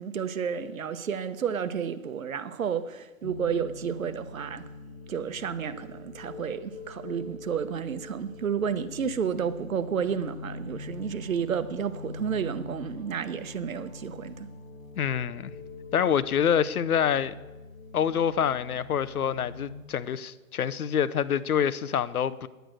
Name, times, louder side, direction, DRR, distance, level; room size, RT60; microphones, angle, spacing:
voice 1, 0.0-4.6 5.1-14.5, right 7 dB, 65° right, 0.9 m, -31 dB
sound 1, 3.2-19.8, left 3 dB, 55° left, 1.3 m, -44 dB
voice 2, 15.0-15.5 15.9-17.3 17.9-22.5, left 8 dB, 80° left, 0.8 m, -26 dB
10.0 x 9.3 x 6.3 m
hypercardioid pair, 180°, 43 cm